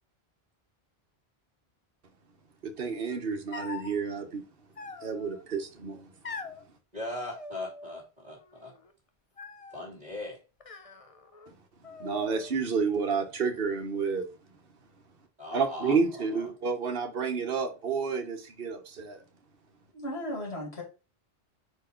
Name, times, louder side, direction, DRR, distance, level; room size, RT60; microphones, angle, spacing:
voice 1, 2.6-4.4 5.0-6.1 12.0-14.3 15.5-19.2, right 5 dB, 60° right, 1.2 m, -30 dB
sound 1, 3.5-4.0 4.8-5.4 6.2-6.6 7.3-8.1 8.4-8.9 9.4-9.9 10.6-11.5 11.8-12.6, left 4 dB, 35° left, 0.7 m, -43 dB
voice 2, 6.9-8.7 9.7-10.4 15.4-16.5, left 2 dB, 40° right, 2.3 m, -39 dB
voice 3, 19.9-20.8, left 1 dB, 90° left, 2.6 m, -35 dB
4.8 x 4.7 x 4.4 m
omnidirectional pair, 1.1 m